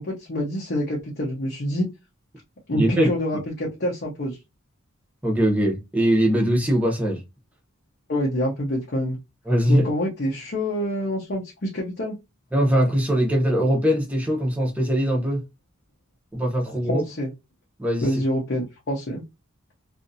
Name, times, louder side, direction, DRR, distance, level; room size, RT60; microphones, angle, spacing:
voice 1, 0.0-1.9 2.7-4.4 8.1-9.2 9.7-12.2 16.9-17.3 18.0-19.2, equal, 50° left, 0.7 m, -26 dB
voice 2, 2.7-3.1 5.2-7.2 9.5-9.9 12.5-15.4 16.3-17.1 17.8-18.2, equal, 5° right, 0.8 m, -21 dB
2.7 x 2.5 x 2.6 m
head